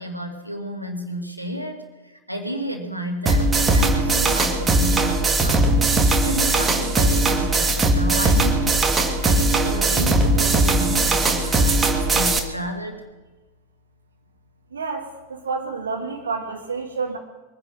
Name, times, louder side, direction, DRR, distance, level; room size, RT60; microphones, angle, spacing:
voice 1, 0.0-5.8 6.2-13.0, equal, 90° right, 3 dB, 2.2 m, -32 dB
sound 1, 3.3-12.4, right 2 dB, 15° right, 1.8 m, -19 dB
voice 2, 14.7-17.2, right 4 dB, 70° right, 1 dB, 1.6 m, -29 dB
22.5 x 10.0 x 6.4 m, 1.2 s
figure-of-eight pair, 90°, 0 cm